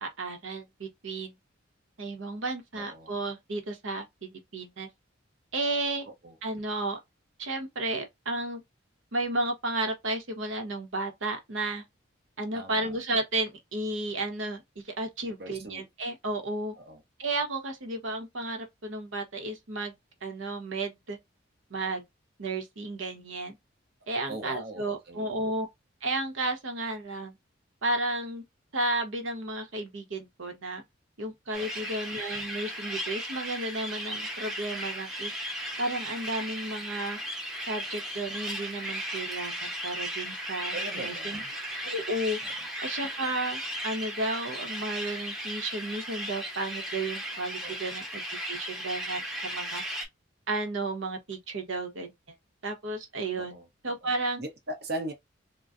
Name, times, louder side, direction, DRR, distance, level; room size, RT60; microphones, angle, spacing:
voice 1, 0.0-1.3 2.0-4.9 5.5-6.0 6.4-7.0 7.4-8.6 9.1-11.8 12.4-16.7 17.2-19.9 20.2-21.2 21.7-22.0 22.4-23.6 24.1-25.7 26.0-27.3 27.8-28.4 28.7-30.8 31.2-35.3 35.8-37.2 37.7-41.4 41.8-42.4 42.8-49.8 50.5-52.1 52.6-53.6 53.8-54.4, right 2 dB, 75° right, 0.9 m, -33 dB
voice 2, 2.7-3.1 6.0-6.4 12.5-13.0 15.3-15.9 16.8-17.0 24.3-25.3 31.5-31.9 40.7-41.5 42.4-42.5 47.6-48.0 53.4-55.1, right 1 dB, 50° right, 0.9 m, -40 dB
sound 1, 31.5-50.0, equal, ahead, 0.7 m, -36 dB
3.8 x 2.2 x 2.5 m
head